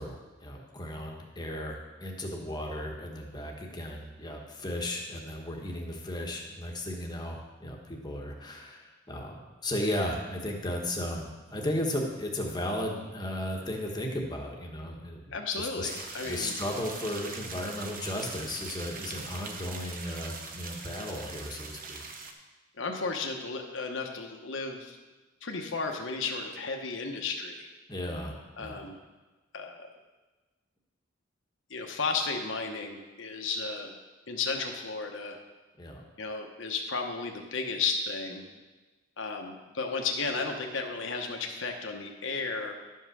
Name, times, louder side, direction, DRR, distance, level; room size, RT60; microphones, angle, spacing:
voice 1, 0.0-15.9 16.2-22.0 27.9-28.8 35.8-36.0, left 1 dB, 20° left, 0 dB, 1.3 m, -35 dB
voice 2, 15.3-16.6 22.8-25.0 25.4-27.7 28.6-29.0 29.5-29.9 31.7-34.0 34.3-35.4 36.2-38.5 39.2-42.7, left 4 dB, 70° left, 2 dB, 1.2 m, -34 dB
sound 1, 15.9-22.3, right 4 dB, 45° right, 1.0 m, -42 dB
11.5 x 5.5 x 6.3 m, 1.2 s
head